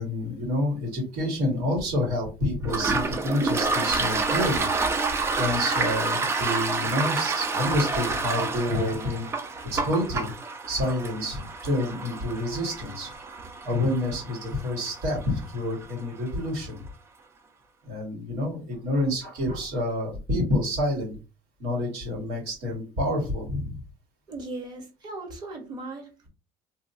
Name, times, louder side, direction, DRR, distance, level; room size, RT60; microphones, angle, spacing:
voice 1, 0.0-4.7 5.4-9.3 9.7-10.3 10.7-13.1 13.6-16.8 17.8-21.2 21.6-23.8, left 1 dB, 80° right, -2 dB, 1.8 m, -28 dB
Toilet flush, 2.6-16.0, right 3 dB, 20° right, 0.4 m, -29 dB
voice 2, 24.3-26.1, right 2 dB, 35° right, 2 dB, 1.1 m, -37 dB
3.0 x 2.8 x 2.7 m, 0.30 s
cardioid pair, 145°, 12 cm